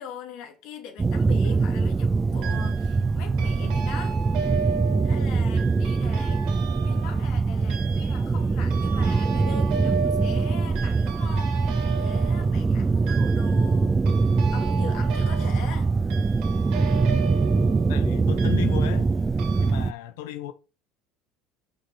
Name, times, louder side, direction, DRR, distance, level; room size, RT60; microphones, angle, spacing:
voice 1, 0.0-4.2 5.0-14.0 14.5-15.9, left 7 dB, 70° left, 2.5 m, -42 dB
sound 1, 1.0-19.9, right 4 dB, 20° right, 0.4 m, -23 dB
sound 2, 1.1-1.7 2.4-3.0 3.4-19.1 19.4-19.7, right 6 dB, 70° right, 2.4 m, -36 dB
voice 2, 17.9-19.1 19.6-20.5, left 13 dB, 90° left, 0.9 m, -33 dB
6.2 x 6.0 x 4.9 m
supercardioid pair, 110°, 0 cm